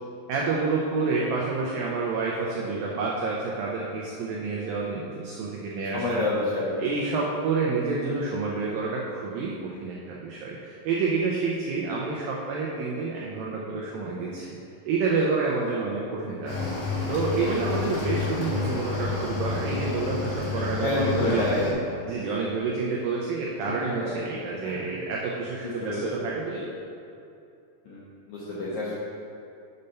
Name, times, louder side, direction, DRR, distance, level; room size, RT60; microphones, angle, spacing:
voice 1, 0.3-6.3 6.8-14.6 14.8-16.6 17.1-21.6 22.1-26.8, right 4 dB, 85° right, -3 dB, 2.0 m, -29 dB
voice 2, 5.8-6.8 16.3-16.4 17.6-17.7 20.8-21.7 23.7-23.8 24.0-24.1 24.6-24.9 25.6-26.2 27.9-28.0 28.3-28.9, left 2 dB, 75° left, -8 dB, 1.7 m, -28 dB
Cricket / Waves surf, 16.5-21.7, left 4 dB, 55° left, 2.8 m, -30 dB
6.8 x 5.3 x 5.5 m, 2.7 s
omnidirectional pair, 5.0 m